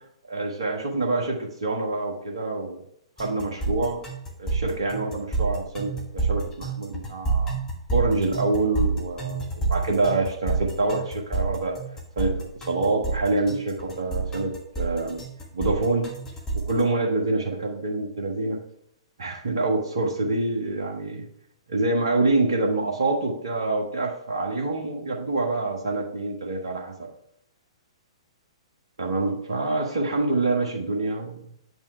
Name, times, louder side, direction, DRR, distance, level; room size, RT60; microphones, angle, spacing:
voice 1, 0.3-2.8 3.2-4.0 4.4-7.5 7.9-11.8 12.1-12.3 12.7-15.2 15.5-16.1 16.5-18.6 19.2-21.3 21.7-27.1 29.0-31.4, right 2 dB, 65° right, 0 dB, 1.5 m, -26 dB
sound 1, 3.2-16.8, right 4 dB, 15° left, 1.6 m, -28 dB
8.7 x 5.4 x 3.3 m, 0.72 s
figure-of-eight pair, 115°, 3 cm